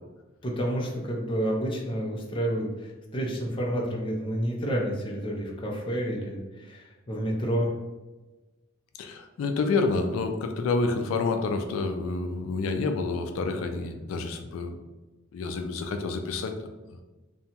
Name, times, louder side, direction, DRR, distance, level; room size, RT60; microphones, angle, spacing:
voice 1, 0.4-7.7, equal, 25° left, -1 dB, 0.4 m, -29 dB
voice 2, 9.0-14.8 15.3-17.0, left 3 dB, 90° left, 7 dB, 0.3 m, -29 dB
2.8 x 2.2 x 2.7 m, 1.1 s
head